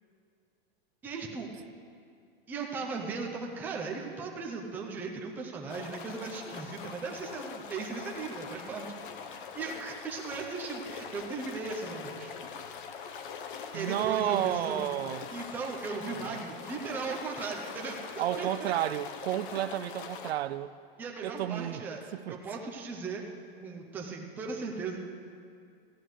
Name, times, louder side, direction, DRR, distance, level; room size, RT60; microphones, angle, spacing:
voice 1, 1.0-1.5 2.5-8.9 9.3-12.3 13.7-14.9 15.3-18.7 21.0-22.0 22.3-23.2 23.6-25.0, right 4 dB, 5° right, 0.5 m, -37 dB
sound 1, 5.7-20.3, left 6 dB, 55° left, 0.9 m, -43 dB
voice 2, 13.7-15.3 16.2-16.4 18.2-20.7 21.2-21.8 22.1-22.4, right 13 dB, 80° right, 0.6 m, -31 dB
14.0 x 6.4 x 9.4 m
supercardioid pair, 170°, 31 cm